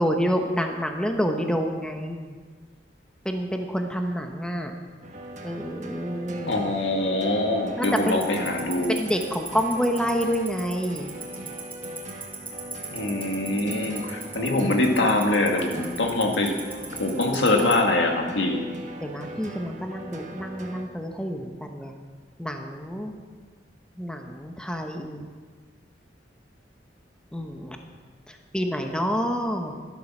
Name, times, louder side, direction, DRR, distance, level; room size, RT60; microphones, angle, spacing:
voice 1, 0.0-2.4 3.2-4.7 5.4-6.6 7.8-8.2 8.9-11.1 19.0-21.9 22.4-23.1 24.0-25.3 27.3-27.8 28.3-29.8, equal, 5° left, 4 dB, 0.9 m, -28 dB
sound 1, 5.0-20.8, right 1 dB, 45° right, 1.3 m, -40 dB
voice 2, 6.5-9.0 12.9-16.6 17.0-18.6, left 2 dB, 80° left, 2 dB, 2.0 m, -23 dB
Tick-tock, 7.8-17.7, right 4 dB, 10° right, 2.4 m, -34 dB
12.5 x 12.0 x 6.2 m, 1.5 s
head